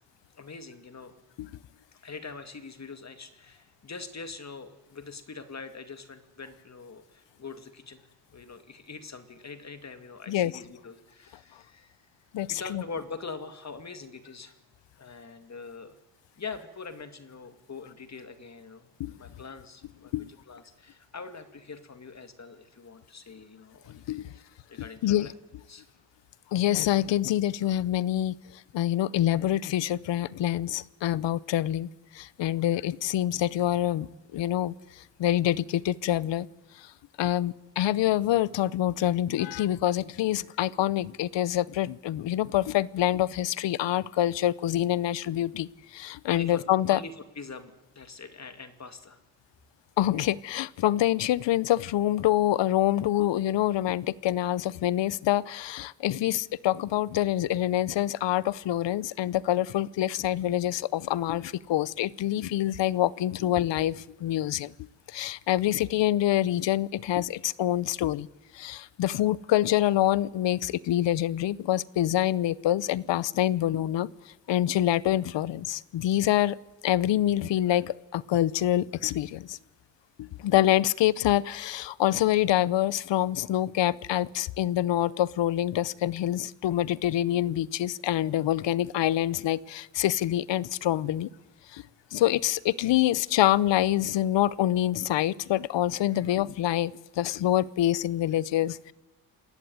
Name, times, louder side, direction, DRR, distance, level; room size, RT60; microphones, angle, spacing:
voice 1, 0.3-1.1 1.9-8.0 8.3-12.0 12.5-14.6 15.0-16.0 16.4-24.0 24.3-24.4 24.7-25.3 25.7-25.8 46.3-46.6 46.9-49.2, left 4 dB, 40° left, 9 dB, 2.4 m, -43 dB
voice 2, 12.3-12.8 19.0-19.1 20.1-20.3 24.1-24.3 25.0-25.3 26.5-28.3 28.7-31.9 32.1-34.1 34.3-34.7 35.2-36.5 37.2-45.7 45.9-47.0 50.0-64.7 65.1-68.3 68.5-74.1 74.5-76.6 76.8-79.6 80.2-91.3 91.7-91.8 92.1-98.9, left 13 dB, 90° left, 21 dB, 0.8 m, -26 dB
28.5 x 19.0 x 9.4 m, 1.1 s
cardioid pair, 100°, 42 cm